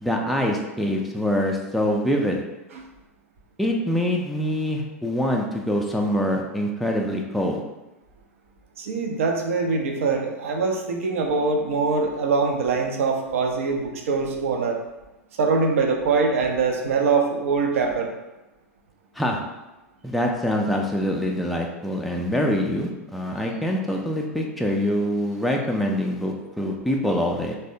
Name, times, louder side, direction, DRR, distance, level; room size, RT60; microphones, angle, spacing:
voice 1, 0.0-2.4 3.6-7.6 19.2-19.4 20.0-27.6, equal, ahead, 0 dB, 0.3 m, -24 dB
voice 2, 8.8-14.8 15.4-18.1, right 4 dB, 65° right, 3 dB, 0.5 m, -23 dB
3.3 x 2.1 x 2.6 m, 1.0 s
figure-of-eight pair, 90°, 8 cm